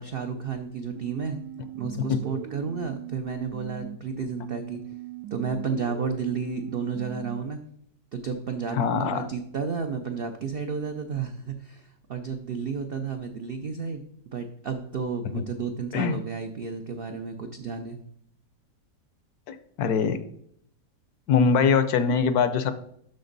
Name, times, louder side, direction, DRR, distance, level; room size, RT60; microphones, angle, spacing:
voice 1, 0.0-1.4 1.7-4.8 5.3-7.6 8.1-18.0, right 5 dB, 70° right, 6 dB, 0.5 m, -32 dB
sound 1, 1.0-4.0 4.4-7.4, right 12 dB, 85° right, 1.2 m, -40 dB
voice 2, 8.7-9.3 15.3-15.4 15.9-16.2 19.5-20.2 21.3-22.7, left 6 dB, 70° left, 12 dB, 1.1 m, -23 dB
12.0 x 4.3 x 4.0 m, 0.69 s
omnidirectional pair, 1.7 m